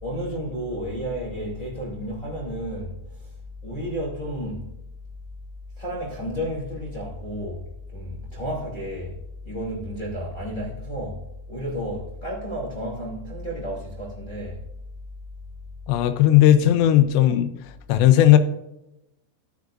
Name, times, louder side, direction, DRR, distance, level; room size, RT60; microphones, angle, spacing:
voice 1, 0.0-3.3 3.6-4.7 5.8-7.6 7.9-9.2 9.4-11.2 11.5-14.6 16.6-16.7, equal, 15° left, 1.7 m, -32 dB
voice 2, 15.9-17.5 17.9-18.4, left 12 dB, 80° left, 2.8 m, -16 dB
13.0 x 9.5 x 2.6 m
omnidirectional pair, 5.5 m